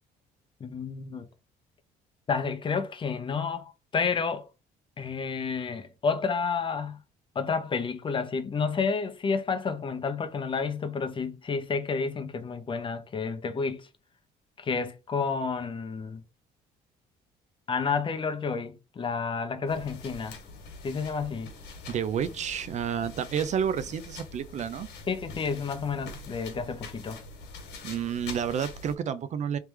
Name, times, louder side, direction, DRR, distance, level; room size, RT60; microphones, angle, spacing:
voice 1, 0.6-1.3 2.3-3.6 3.9-4.5 5.0-7.0 7.3-13.9 14.6-16.2 17.7-20.4 20.8-21.5 25.1-27.2, left 5 dB, 30° left, 0.7 m, -30 dB
sound 1, 19.7-28.9, left 3 dB, 85° left, 1.6 m, -44 dB
voice 2, 21.9-24.9 27.8-29.6, right 8 dB, 45° right, 0.4 m, -30 dB
3.3 x 3.3 x 3.1 m
cardioid pair, 110°, 17 cm